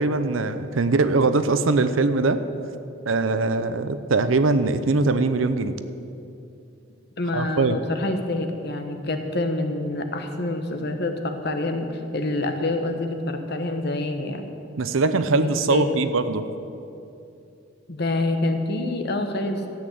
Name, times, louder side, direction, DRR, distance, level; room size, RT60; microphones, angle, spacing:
voice 1, 0.0-2.4 3.1-5.8 7.3-7.8 14.8-16.5, right 3 dB, 80° right, 11 dB, 0.6 m, -21 dB
voice 2, 7.2-14.5 15.4-15.9 17.9-19.7, left 2 dB, 55° left, 6 dB, 1.2 m, -27 dB
13.5 x 8.8 x 7.7 m, 2.7 s
head